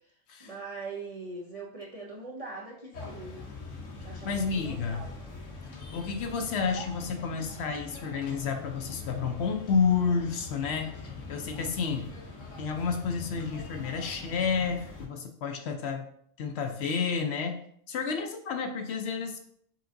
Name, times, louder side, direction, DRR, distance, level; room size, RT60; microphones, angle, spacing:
voice 1, 0.4-3.5 4.0-5.1, right 3 dB, 45° right, -3 dB, 0.5 m, -41 dB
sound 1, 2.9-15.1, left 3 dB, 80° left, 1.3 m, -43 dB
voice 2, 4.1-5.1 5.7-12.1 12.6-16.1 16.4-17.6 17.9-19.4, left 5 dB, 65° left, 4 dB, 0.8 m, -30 dB
5.7 x 3.5 x 2.6 m, 0.65 s
omnidirectional pair, 1.3 m